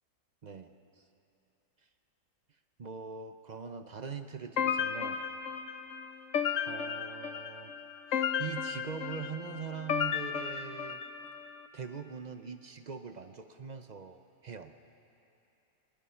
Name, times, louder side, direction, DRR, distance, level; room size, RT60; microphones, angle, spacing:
voice 1, 2.8-5.2 6.7-7.7 8.1-11.0 11.7-14.7, right 6 dB, 55° right, 7 dB, 0.5 m, -42 dB
sound 1, 4.6-11.5, left 8 dB, 60° left, 1.1 m, -34 dB
22.0 x 20.5 x 5.7 m, 2.7 s
omnidirectional pair, 1.7 m